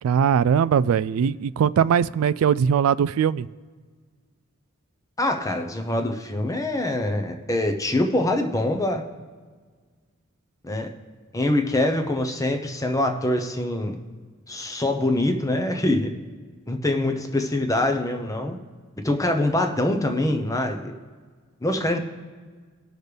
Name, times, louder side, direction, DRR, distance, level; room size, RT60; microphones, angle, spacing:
voice 1, 0.0-3.5, right 7 dB, 85° right, 17 dB, 0.3 m, -20 dB
voice 2, 5.2-9.0 10.6-10.9 11.3-14.0 14.5-16.1 16.7-18.6 19.0-20.8 21.6-22.0, left 1 dB, 15° left, 5 dB, 0.8 m, -24 dB
19.0 x 6.5 x 3.3 m, 1.5 s
head